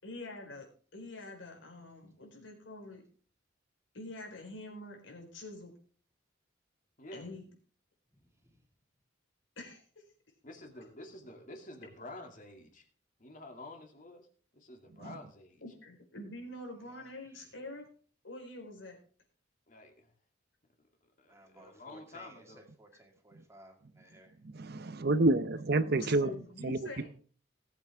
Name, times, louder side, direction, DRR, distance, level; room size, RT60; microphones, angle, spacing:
voice 1, 0.0-0.7 0.9-3.0 3.9-5.7 7.1-7.5 9.6-9.8 15.6-17.9 18.2-19.0 26.0-27.1, left 2 dB, 90° left, 4.3 m, -45 dB
voice 2, 7.0-7.3 10.4-12.9 13.2-14.3 14.5-15.6 19.7-20.1 20.8-22.6, left 2 dB, 45° left, 2.4 m, -50 dB
voice 3, 21.3-24.3, right 1 dB, 15° right, 2.2 m, -57 dB
voice 4, 24.4-26.3 26.6-27.0, right 2 dB, 55° right, 0.7 m, -29 dB
19.0 x 8.2 x 3.5 m
head